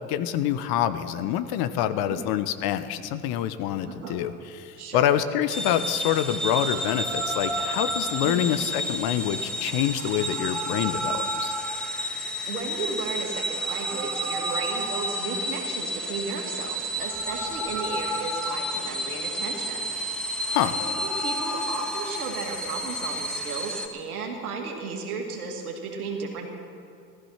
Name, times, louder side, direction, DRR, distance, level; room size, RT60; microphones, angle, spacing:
voice 1, 0.1-11.5 20.5-20.7, left 11 dB, 55° left, 12 dB, 1.1 m, -26 dB
voice 2, 3.8-4.3 4.8-5.1 8.2-8.4 12.5-19.9 20.6-26.5, right 4 dB, 90° right, 0 dB, 2.5 m, -34 dB
sound 1, 5.5-23.9, equal, ahead, 1.8 m, -30 dB
15.5 x 14.0 x 5.8 m, 2.4 s
hypercardioid pair, 70°, 43 cm